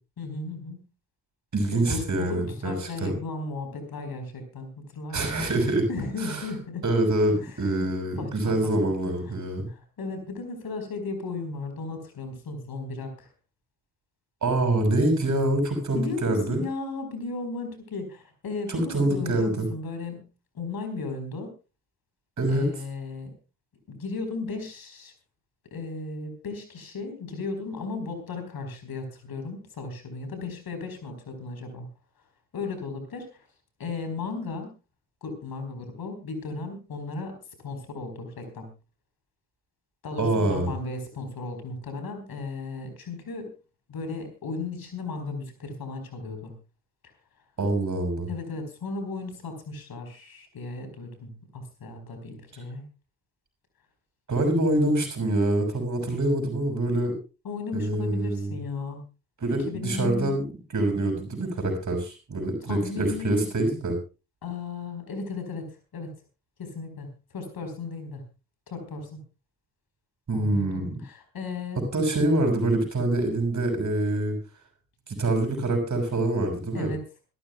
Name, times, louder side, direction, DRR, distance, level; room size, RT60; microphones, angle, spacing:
voice 1, 0.2-0.9 1.7-5.2 5.9-6.8 7.3-7.5 8.2-9.3 9.7-13.3 15.9-20.3 20.5-21.5 22.5-23.3 23.9-25.1 25.7-31.9 32.5-33.5 33.8-34.7 35.2-38.7 40.0-43.5 43.9-46.6 48.3-52.8 56.0-56.2 57.4-59.0 59.6-60.3 62.7-63.6 64.4-66.1 66.6-67.1 67.3-68.2 68.7-69.2 70.3-71.8 76.7-77.0, left 3 dB, 50° left, 7 dB, 4.5 m, -35 dB
voice 2, 1.5-3.1 5.1-5.8 6.2-6.4 6.8-9.7 14.4-16.6 18.7-19.7 22.4-22.7 40.2-40.7 47.6-48.3 54.3-57.1 57.7-58.5 59.4-60.5 60.7-64.0 70.3-70.9 71.9-74.4 75.1-76.9, right 2 dB, 35° right, 4 dB, 6.4 m, -25 dB
26.0 x 12.5 x 2.3 m, 0.32 s
figure-of-eight pair, 40°, 48 cm